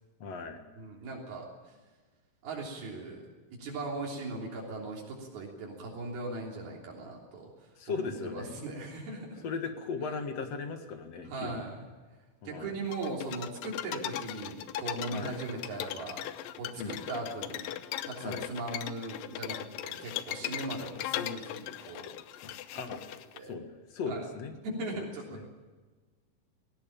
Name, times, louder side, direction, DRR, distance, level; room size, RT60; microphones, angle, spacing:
voice 1, 0.2-0.6 7.8-8.6 9.4-11.7 12.4-12.7 15.1-15.3 16.8-17.0 18.2-18.5 22.4-23.0 23.5-23.6 23.9-24.5 24.9-25.1 25.3-25.4, left 4 dB, 50° left, 7 dB, 2.4 m, -37 dB
voice 2, 0.8-1.5 2.4-3.2 3.5-7.5 7.9-9.5 11.3-11.8 12.5-16.2 16.6-17.7 18.1-22.1 23.4-23.6 24.1-24.3 24.6-25.5, right 2 dB, 85° right, -2 dB, 5.2 m, -39 dB
sound 1, 12.9-23.4, left 12 dB, 75° left, 2.4 m, -38 dB
18.5 x 18.0 x 8.8 m, 1.3 s
omnidirectional pair, 4.3 m